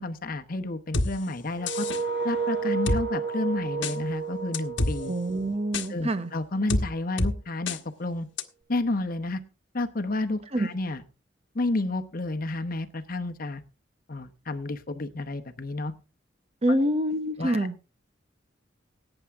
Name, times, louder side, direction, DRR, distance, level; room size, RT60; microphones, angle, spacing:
voice 1, 0.0-1.9 2.2-5.1 5.9-8.3 8.7-9.4 9.7-11.0 11.5-13.6 14.1-15.9 16.7-16.9 17.4-17.7, left 2 dB, 50° left, 1.0 m, -31 dB
sound 1, 0.9-1.1 1.7-2.0 2.9-3.0 3.8-4.0 4.5-4.9 5.7-5.9 6.7-6.8 7.2-7.3 7.7-7.8 8.4-8.5, left 2 dB, 70° left, 1.2 m, -26 dB
sound 2, 1.6-6.4, right 5 dB, 75° right, 2.4 m, -32 dB
voice 2, 5.0-6.3 10.5-10.7 16.6-17.7, right 1 dB, 35° right, 0.9 m, -26 dB
17.5 x 9.1 x 3.5 m
head